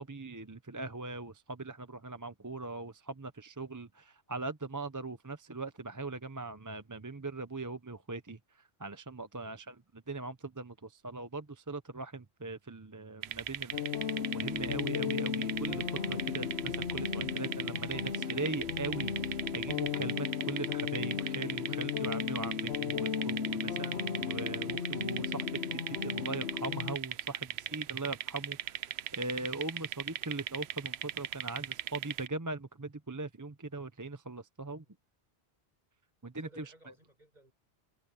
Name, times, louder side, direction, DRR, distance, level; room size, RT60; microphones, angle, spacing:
voice 1, 0.0-8.4 8.8-13.8 14.3-34.8 36.2-36.7, right 3 dB, 20° right, 0.7 m, -40 dB
sound 1, 13.2-20.1, equal, 20° left, 2.9 m, -58 dB
sound 2, 13.2-32.3, right 11 dB, 75° right, 0.9 m, -38 dB
sound 3, 13.7-27.0, left 7 dB, 80° left, 1.2 m, -35 dB
voice 2, 27.5-28.1 34.8-34.9 36.4-37.5, right 1 dB, 40° right, 7.0 m, -62 dB
omnidirectional pair, 1.1 m